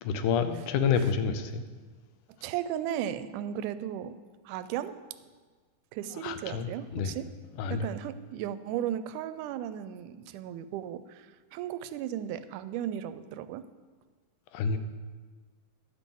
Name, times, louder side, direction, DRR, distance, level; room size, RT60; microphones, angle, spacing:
voice 1, 0.0-1.6 6.2-7.2 7.6-7.9 14.5-14.8, left 6 dB, 85° left, 9 dB, 2.2 m, -28 dB
voice 2, 2.4-4.2 4.5-5.0 5.9-7.3 7.7-13.7, right 10 dB, 85° right, 13 dB, 2.1 m, -35 dB
11.0 x 7.5 x 5.4 m, 1.4 s
omnidirectional pair, 3.5 m